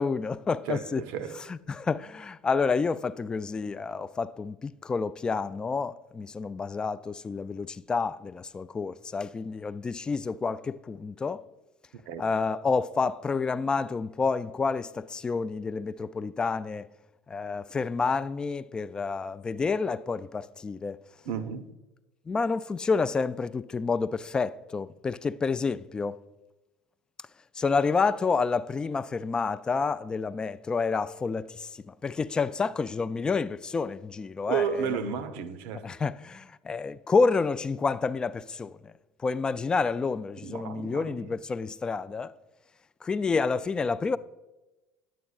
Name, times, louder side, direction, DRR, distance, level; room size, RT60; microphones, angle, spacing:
voice 1, 0.0-1.0 1.5-11.4 12.2-16.9 17.3-21.0 22.3-26.2 27.6-34.9 35.8-38.9 39.2-42.3 43.0-44.2, left 4 dB, 20° left, 0.3 m, -29 dB
voice 2, 0.7-1.4 12.0-12.2 21.2-21.7 34.5-35.9 40.4-41.3, right 7 dB, 65° right, 0.6 m, -32 dB
9.1 x 8.3 x 2.4 m
hypercardioid pair, 75°, 4 cm